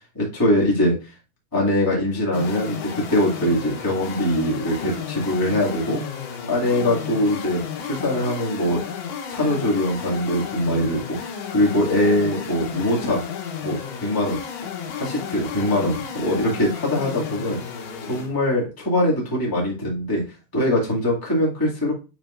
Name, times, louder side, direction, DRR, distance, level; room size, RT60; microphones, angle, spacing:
voice 1, 0.1-1.1 1.5-6.0 6.5-8.8 9.3-11.2 11.5-13.2 13.6-14.4 14.9-17.6 18.1-20.2 20.5-21.9, left 1 dB, 10° left, -4 dB, 0.9 m, -22 dB
sound 1, 2.3-18.3, left 7 dB, 80° left, 3.0 m, -33 dB
8.8 x 5.1 x 2.5 m, 0.32 s
omnidirectional pair, 4.5 m